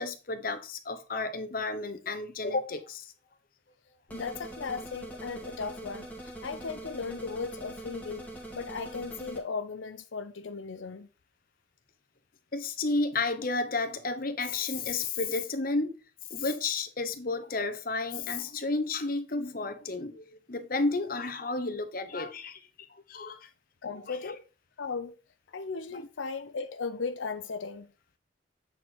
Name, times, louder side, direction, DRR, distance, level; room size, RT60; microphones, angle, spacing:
voice 1, 0.0-3.1 12.5-16.0 16.3-22.6 23.1-23.5 24.1-24.3, left 3 dB, 50° left, 0.9 m, -32 dB
voice 2, 4.1-8.3 8.5-11.1 23.8-24.4 24.8-25.2 25.5-27.9, left 4 dB, 85° left, 0.6 m, -36 dB
sound 1, 4.1-9.4, right 1 dB, 10° left, 1.6 m, -43 dB
8.2 x 4.5 x 4.2 m
head